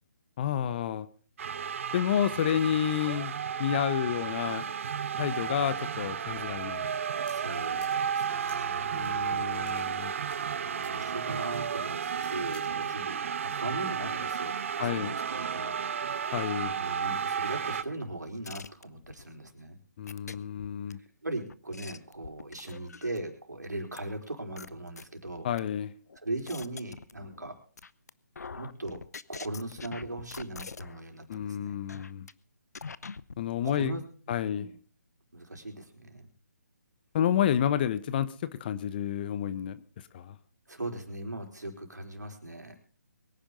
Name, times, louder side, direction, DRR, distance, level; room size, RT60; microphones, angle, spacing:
voice 1, 0.4-1.1 1.9-3.3 3.6-4.6 5.2-6.9 8.9-10.1 14.8-15.1 16.3-16.7 20.0-21.0 25.4-25.9 31.3-32.3 33.4-34.0 34.3-34.7 37.1-39.8 40.1-40.4, left 9 dB, 35° left, 14 dB, 1.0 m, -30 dB
sound 1, 1.4-17.8, right 7 dB, 50° right, 0.8 m, -33 dB
sound 2, 7.2-12.6, left 3 dB, 15° left, 3.6 m, -58 dB
voice 2, 7.3-9.0 10.6-15.8 16.8-19.8 21.0-25.5 26.2-27.6 28.5-29.0 29.3-31.8 33.6-34.0 34.5-34.8 35.3-36.3 40.7-42.8, right 2 dB, 90° right, 4 dB, 4.5 m, -39 dB
sound 3, 18.5-19.2 20.1-20.9 21.5-23.3 24.0-24.1 24.6-25.6 26.1-27.5 27.8-28.1 28.4-31.0 31.3-31.5 31.9-32.3 32.7-33.4, left 5 dB, 70° left, 0.8 m, -44 dB
23.0 x 10.0 x 3.9 m, 0.41 s
figure-of-eight pair, 150°, 9 cm